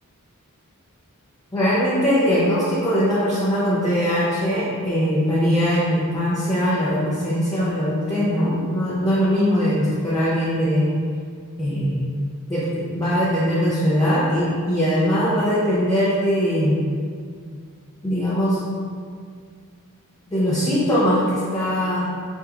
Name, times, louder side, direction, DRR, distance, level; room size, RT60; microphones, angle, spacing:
voice 1, 1.5-10.9 11.6-12.1 12.5-16.8 18.0-18.6 20.3-22.0, equal, 15° left, -10 dB, 0.5 m, -21 dB
3.4 x 2.8 x 2.4 m, 2.1 s
head